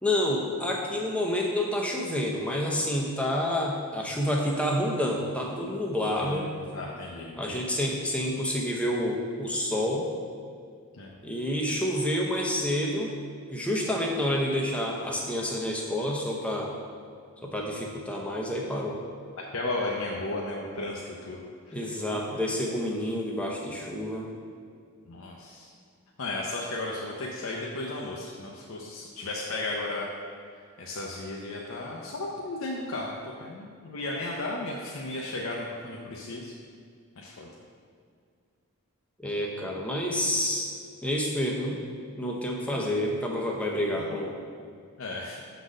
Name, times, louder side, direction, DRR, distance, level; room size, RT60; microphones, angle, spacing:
voice 1, 0.0-6.5 7.4-10.1 11.2-13.1 13.5-16.7 17.4-19.0 21.7-24.3 39.2-40.7 41.0-41.8 42.2-44.3, left 1 dB, 5° left, -2 dB, 0.7 m, -28 dB
voice 2, 6.2-7.6 11.0-11.1 19.4-21.4 21.7-21.9 25.1-25.7 26.2-30.1 30.8-36.5 37.2-37.5 42.7-42.9 44.0-44.2 45.0-45.4, left 2 dB, 65° left, -2 dB, 0.6 m, -35 dB
6.5 x 4.0 x 6.3 m, 2.2 s
head